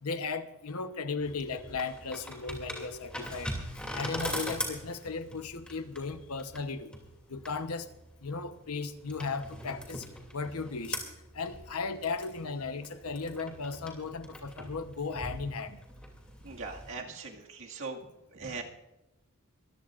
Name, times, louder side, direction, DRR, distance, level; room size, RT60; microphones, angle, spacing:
voice 1, 0.0-3.5 3.9-6.9 7.3-7.9 8.2-10.0 10.3-11.0 11.3-15.8, left 4 dB, 80° left, 1.0 m, -36 dB
sound 1, 1.2-16.9, equal, 5° left, 2.7 m, -42 dB
voice 2, 16.4-18.0 18.3-18.6, right 4 dB, 60° right, 2.0 m, -40 dB
23.5 x 16.0 x 2.5 m
head